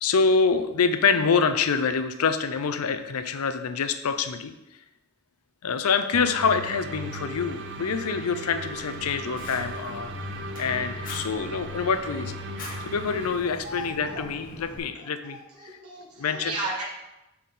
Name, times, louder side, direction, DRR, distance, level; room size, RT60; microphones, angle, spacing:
voice 1, 0.0-4.5 5.6-10.1 10.6-12.3 12.9-15.4 15.6-15.8 16.2-16.6, left 5 dB, 85° left, 9 dB, 0.5 m, -26 dB
sound 1, 6.1-13.4, right 1 dB, 55° right, 0.5 m, -37 dB
Fire, 8.7-14.8, left 2 dB, 40° left, 1.0 m, -42 dB
voice 2, 13.4-14.2 14.9-16.9, right 2 dB, 85° right, -5 dB, 1.6 m, -36 dB
7.3 x 4.2 x 3.7 m, 0.95 s
head